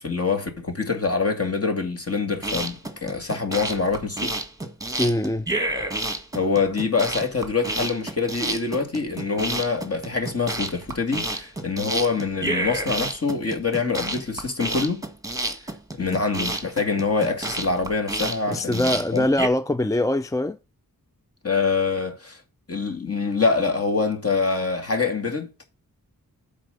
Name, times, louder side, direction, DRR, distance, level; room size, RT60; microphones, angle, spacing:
voice 1, 0.0-4.3 6.3-15.0 16.0-19.3 21.4-22.4 22.7-25.5, left 4 dB, 40° left, 2.4 m, -25 dB
sound 1, 2.3-19.5, right 2 dB, 10° right, 1.5 m, -29 dB
voice 2, 5.0-5.5 18.5-20.6, left 1 dB, 10° left, 0.4 m, -23 dB
7.9 x 4.3 x 6.7 m
cardioid pair, 55°, 36 cm